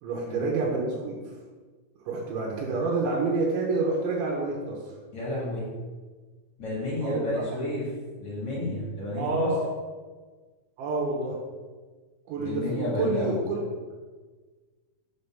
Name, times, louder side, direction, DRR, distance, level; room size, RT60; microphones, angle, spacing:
voice 1, 0.0-1.2 2.1-4.8 7.0-7.5 9.1-9.6 10.8-11.4 12.3-13.6, right 3 dB, 85° right, -3 dB, 3.4 m, -28 dB
voice 2, 5.1-5.7 6.6-7.8 8.2-9.5 12.4-13.3, left 1 dB, 45° left, -8 dB, 2.1 m, -31 dB
7.6 x 3.4 x 5.5 m, 1.4 s
omnidirectional pair, 5.2 m